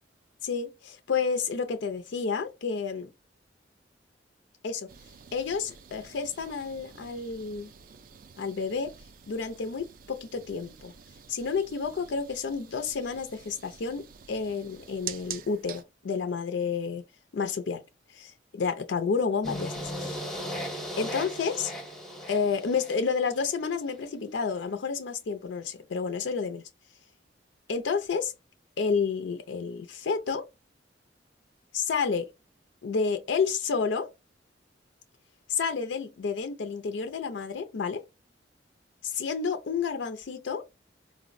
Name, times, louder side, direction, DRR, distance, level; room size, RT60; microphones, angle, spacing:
voice 1, 0.4-3.1 4.6-4.9 5.3-7.7 8.4-8.9 9.3-10.9 11.3-17.0 17.3-17.8 18.1-20.2 21.0-21.7 22.3-26.6 27.7-28.3 28.8-30.4 31.7-32.3 32.8-34.1 35.5-38.0 39.0-40.6, left 5 dB, 75° left, 0.4 m, -30 dB
sound 1, 4.9-15.8, right 8 dB, 50° right, 0.3 m, -47 dB
sound 2, 19.4-23.5, equal, 5° left, 0.7 m, -37 dB
4.2 x 2.0 x 2.5 m
head